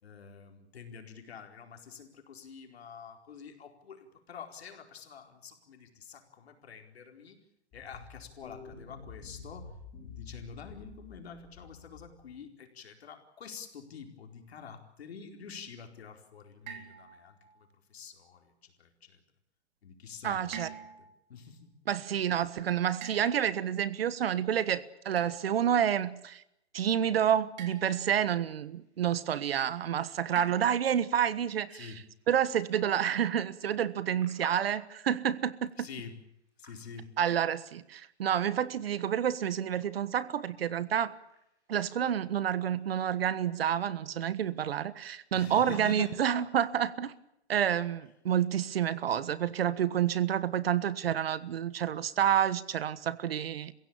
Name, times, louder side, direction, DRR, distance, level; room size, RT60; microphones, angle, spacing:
voice 1, 0.0-7.4 7.7-9.7 10.0-19.2 19.8-21.7 31.7-32.0 35.8-36.2 36.6-37.1 45.3-46.2, left 6 dB, 65° left, 4 dB, 4.6 m, -47 dB
sound 1, 7.7-12.4, left 5 dB, 15° left, 6.0 m, -49 dB
sound 2, 16.7-17.6 20.5-21.2 23.0-23.8 25.2-25.6 27.6-28.2 30.4-31.0, right 7 dB, 40° right, 3.7 m, -46 dB
voice 2, 20.2-20.7 21.9-26.4 26.7-31.9 32.3-35.9 37.2-41.2 41.7-47.1 47.5-53.7, right 9 dB, 60° right, 16 dB, 1.4 m, -29 dB
sound 3, 27.4-46.9, right 1 dB, 10° right, 6.3 m, -59 dB
28.0 x 16.5 x 8.9 m, 0.82 s
hypercardioid pair, 165°, 33 cm